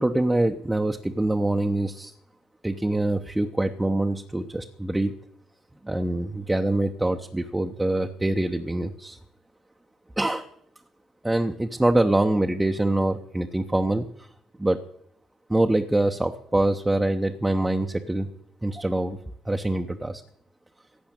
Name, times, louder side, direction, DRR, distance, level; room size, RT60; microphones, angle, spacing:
voice 1, 0.0-2.1 2.6-5.2 5.8-9.2 10.2-10.5 11.2-14.3 14.6-14.8 15.5-18.3 18.6-19.2 19.4-20.2, right 1 dB, 10° right, 3 dB, 0.9 m, -24 dB
16.0 x 6.2 x 9.8 m, 0.70 s
figure-of-eight pair, 50°, 0 cm